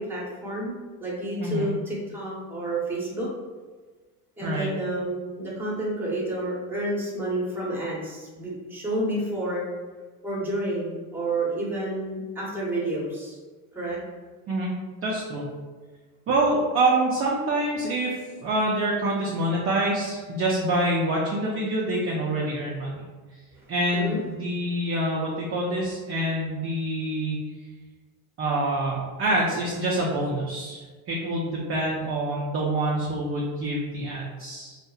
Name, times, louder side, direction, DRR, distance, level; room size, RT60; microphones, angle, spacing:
voice 1, 0.0-3.3 4.4-9.6 10.2-13.4 13.7-14.0 23.5-23.6 23.9-24.2, right 1 dB, 5° right, -6 dB, 0.8 m, -30 dB
voice 2, 15.0-15.4 16.3-18.1 18.4-23.0 23.7-27.4 28.4-34.8, right 1 dB, 30° right, -4 dB, 0.4 m, -26 dB
2.6 x 2.1 x 2.3 m, 1.4 s
supercardioid pair, 105°, 45 cm